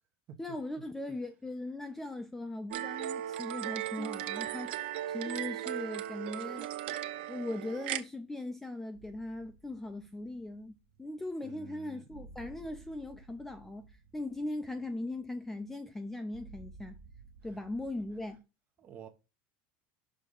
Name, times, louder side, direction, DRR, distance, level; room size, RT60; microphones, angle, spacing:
voice 1, 0.4-6.7 7.3-17.0 17.4-18.4, left 2 dB, 5° left, 0.4 m, -39 dB
sound 1, 2.7-8.0, right 12 dB, 85° right, 0.7 m, -37 dB
sound 2, 8.9-18.4, right 4 dB, 65° right, 1.1 m, -56 dB
voice 2, 11.4-12.0 17.4-17.6 18.8-19.1, right 8 dB, 30° right, 1.1 m, -50 dB
6.5 x 3.4 x 5.4 m
supercardioid pair, 175°, 6 cm